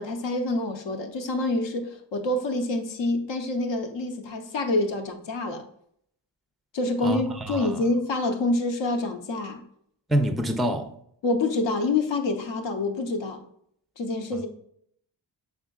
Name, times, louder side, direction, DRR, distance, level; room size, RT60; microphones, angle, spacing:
voice 1, 0.0-5.6 6.7-9.6 11.2-13.4 14.0-14.5, left 2 dB, 80° left, 0.8 m, -27 dB
voice 2, 7.0-7.9 10.1-10.9, right 1 dB, ahead, 0.3 m, -26 dB
5.8 x 3.6 x 2.3 m
cardioid pair, 90°, 44 cm